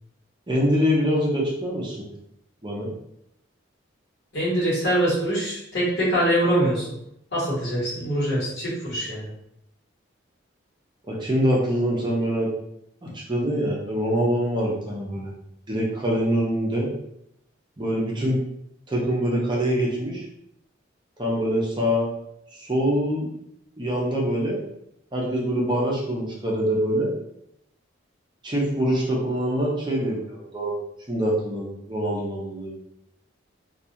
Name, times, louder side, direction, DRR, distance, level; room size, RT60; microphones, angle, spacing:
voice 1, 0.5-2.1 2.6-2.9 11.1-12.5 13.0-15.3 15.7-16.9 17.8-18.4 18.9-20.2 21.2-22.1 22.5-23.3 23.8-24.6 25.1-27.1 28.4-30.8 31.1-32.7, equal, 25° right, -4 dB, 0.5 m, -24 dB
voice 2, 4.3-6.9 7.3-9.3, right 1 dB, 55° left, -8 dB, 1.2 m, -23 dB
2.3 x 2.3 x 2.8 m, 0.78 s
head